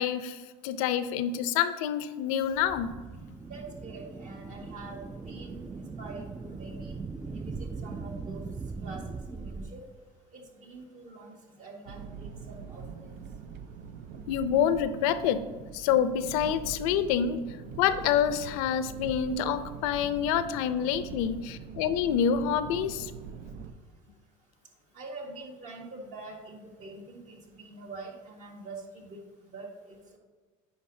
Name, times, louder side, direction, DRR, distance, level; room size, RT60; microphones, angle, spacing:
voice 1, 0.0-2.9 14.3-15.4 15.7-17.4 17.8-23.1, left 8 dB, 85° left, 12 dB, 0.5 m, -27 dB
sound 1, 2.4-9.7, right 4 dB, 15° right, 0.3 m, -40 dB
voice 2, 3.4-6.9 7.3-8.4 8.8-9.0 9.3-9.8 10.3-13.2 24.9-29.2 29.5-30.2, right 2 dB, 45° right, 1 dB, 1.7 m, -45 dB
sound 2, 11.9-23.7, right 6 dB, 60° right, 0.6 m, -43 dB
9.6 x 5.3 x 2.7 m, 1.4 s
supercardioid pair, 100°, 17 cm